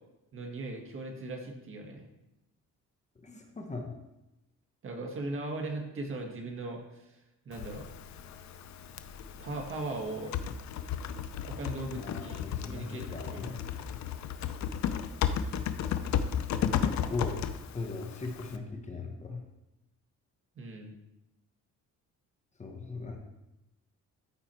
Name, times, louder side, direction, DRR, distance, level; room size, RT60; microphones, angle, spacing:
voice 1, 0.3-2.0 4.8-7.0 7.5-7.9 9.4-10.3 11.5-13.6 20.6-20.9, right 2 dB, 45° right, 2 dB, 1.8 m, -38 dB
voice 2, 3.2-3.9 11.9-13.6 16.6-17.4 17.7-19.4 22.6-23.2, left 3 dB, 25° left, 3 dB, 1.1 m, -38 dB
Typing, 7.5-18.6, left 8 dB, 70° left, 0.6 m, -34 dB
13.5 x 4.7 x 4.5 m, 0.95 s
cardioid pair, 140°, 30 cm